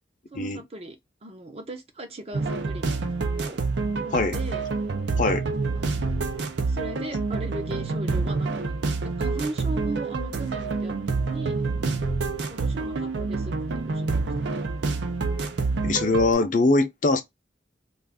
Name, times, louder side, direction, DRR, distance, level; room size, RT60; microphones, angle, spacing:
voice 1, 0.3-1.0 1.2-2.9 3.3-3.6 4.0-4.7 5.7-6.3 6.7-12.0 12.5-14.6, right 2 dB, 35° right, 0.6 m, -38 dB
sound 1, 2.3-16.3, right 3 dB, 80° right, 0.5 m, -27 dB
voice 2, 15.8-17.2, left 2 dB, 45° left, 0.5 m, -22 dB
2.4 x 2.4 x 3.4 m
head